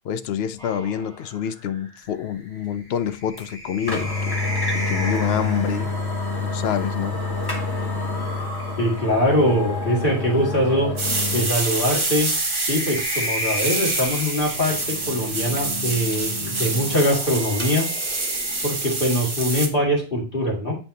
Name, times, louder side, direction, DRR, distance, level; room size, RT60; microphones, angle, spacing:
voice 1, 0.0-4.1 4.7-5.9 6.4-7.2, left 9 dB, 65° left, 0.7 m, -27 dB
sound 1, 0.6-6.1 7.5-10.5 11.8-15.3 16.6-19.5, equal, 5° left, 3.2 m, -35 dB
sound 2, 3.4-3.5 3.9-11.5 11.9-12.0 14.5-17.1, left 3 dB, 20° left, 1.3 m, -28 dB
voice 2, 8.8-10.9 11.3-12.3 12.7-17.9 18.6-20.7, equal, 45° left, 2.5 m, -22 dB
sound 3, 11.0-19.7, right 2 dB, 25° right, 0.9 m, -27 dB
8.0 x 5.7 x 2.7 m
omnidirectional pair, 1.2 m